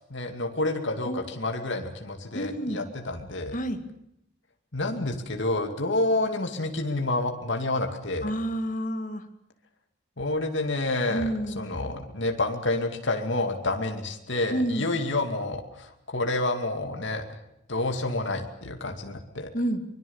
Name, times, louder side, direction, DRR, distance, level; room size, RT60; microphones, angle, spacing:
voice 1, 0.0-3.6 4.7-8.3 10.2-17.4 17.7-19.5, left 2 dB, 65° left, 4 dB, 2.5 m, -29 dB
voice 2, 2.3-2.8 3.5-3.8 8.2-9.2 11.1-11.7 14.5-14.9 19.5-19.8, right 1 dB, 40° left, 8 dB, 2.1 m, -29 dB
24.0 x 22.0 x 7.3 m, 0.78 s
head